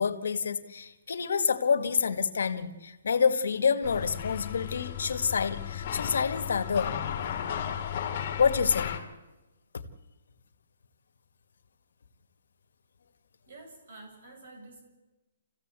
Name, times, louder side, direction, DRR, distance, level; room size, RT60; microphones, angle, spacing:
voice 1, 0.0-7.0 8.4-8.9 9.7-9.8, left 6 dB, 65° left, 8 dB, 1.8 m, -27 dB
sound 1, 3.8-9.0, left 9 dB, 25° left, 2.2 m, -34 dB
voice 2, 13.5-14.8, right 2 dB, 50° right, 4 dB, 7.2 m, -49 dB
28.0 x 15.5 x 8.3 m, 1.1 s
hypercardioid pair, 180°, 0 cm